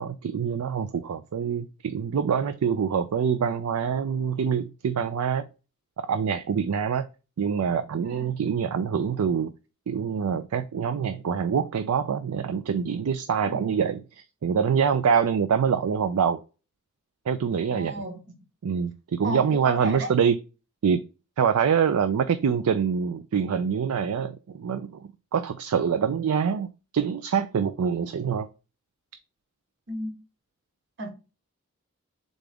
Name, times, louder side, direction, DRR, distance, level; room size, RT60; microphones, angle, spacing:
voice 1, 0.0-5.5 6.0-7.1 7.4-9.5 9.9-16.4 17.3-18.0 18.6-20.4 20.8-21.0 21.4-25.0 25.3-26.7 26.9-28.5, right 7 dB, 80° right, 0.4 m, -25 dB
voice 2, 17.6-18.2 19.2-20.1 29.9-30.1 31.0-31.1, right 1 dB, 50° right, 1.0 m, -33 dB
3.9 x 3.5 x 3.4 m
head